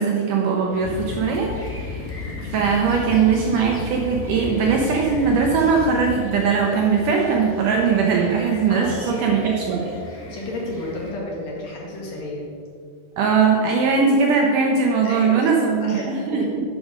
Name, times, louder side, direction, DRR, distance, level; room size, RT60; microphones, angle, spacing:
voice 1, 0.0-2.1 2.4-9.9 13.2-16.6, right 5 dB, 80° right, 0 dB, 1.9 m, -20 dB
sound 1, 0.7-11.1, equal, 5° left, 0.9 m, -39 dB
sound 2, 0.8-6.2, left 5 dB, 85° left, 2.5 m, -33 dB
voice 2, 8.7-9.5 10.1-12.5 15.0-16.5, left 2 dB, 50° left, -3 dB, 2.7 m, -33 dB
11.0 x 6.3 x 5.0 m, 2.3 s
omnidirectional pair, 4.5 m